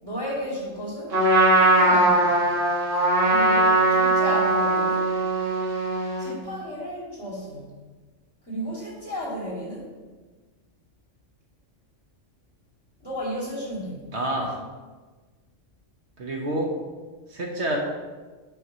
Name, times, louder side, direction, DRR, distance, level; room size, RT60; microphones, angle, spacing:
voice 1, 0.0-1.2 1.5-2.4 3.3-5.1 6.2-7.8 8.5-9.9 13.0-14.1, equal, 20° left, -7 dB, 2.7 m, -33 dB
Trumpet, 1.1-6.3, right 2 dB, 90° right, 1.9 m, -20 dB
voice 2, 14.1-14.6 16.2-16.8 17.3-17.8, right 1 dB, 65° right, 0 dB, 1.3 m, -27 dB
5.5 x 5.5 x 5.5 m, 1.3 s
omnidirectional pair, 1.3 m